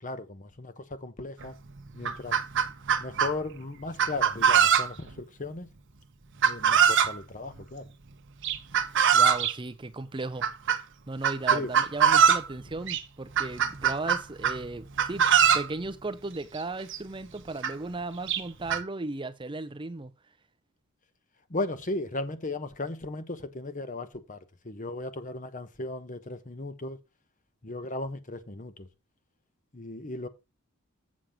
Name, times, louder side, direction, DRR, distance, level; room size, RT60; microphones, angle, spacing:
voice 1, 0.0-1.6 1.9-2.4 3.0-5.7 6.4-7.9 11.5-11.7 21.5-27.0 27.6-28.9 29.7-30.3, left 2 dB, 35° left, 1.1 m, -36 dB
Chicken rooster, 1.4-1.5 1.9-3.3 4.0-5.1 6.4-7.1 8.4-9.5 10.4-10.8 11.2-12.5 12.9-13.0 13.4-14.6 15.0-15.7 16.6-16.7 16.9-17.0 17.6-17.7 18.3-18.8, right 7 dB, 60° right, 1.0 m, -22 dB
voice 2, 9.1-10.5 11.1-15.3 15.5-20.1, right 2 dB, 20° right, 0.6 m, -36 dB
7.5 x 7.4 x 5.0 m
head